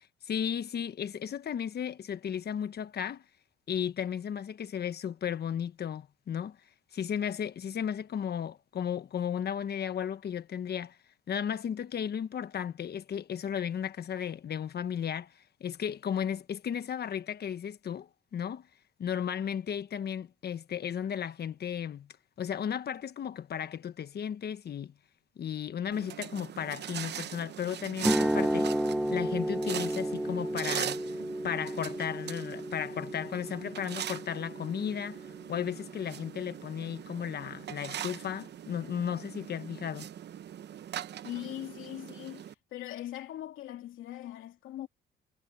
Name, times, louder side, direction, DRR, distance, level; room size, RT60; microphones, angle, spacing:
voice 1, 0.2-3.2 3.7-6.6 6.9-11.0 11.3-15.3 15.6-18.6 19.0-22.1 22.4-24.9 25.4-28.7 29.1-31.0 31.4-35.2 35.5-40.1, left 8 dB, 55° left, 1.3 m, -34 dB
sound 1, 25.9-42.5, right 10 dB, 60° right, 0.9 m, -41 dB
sound 2, 28.0-36.0, right 1 dB, 5° right, 0.7 m, -32 dB
voice 2, 41.2-44.9, left 13 dB, 85° left, 2.9 m, -41 dB
cardioid pair, 90°, 20 cm